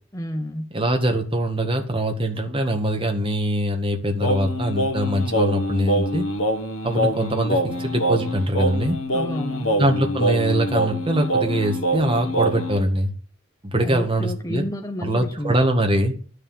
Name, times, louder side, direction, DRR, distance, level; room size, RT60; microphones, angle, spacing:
voice 1, 0.1-0.7 9.1-9.8 13.8-15.6, equal, 15° left, 0.9 m, -30 dB
voice 2, 0.7-6.2 6.8-9.0 9.8-13.1 13.6-14.6 15.0-16.1, right 1 dB, 25° right, 1.7 m, -23 dB
Singing, 4.2-12.8, right 1 dB, 70° left, 1.5 m, -24 dB
11.0 x 6.7 x 9.2 m
head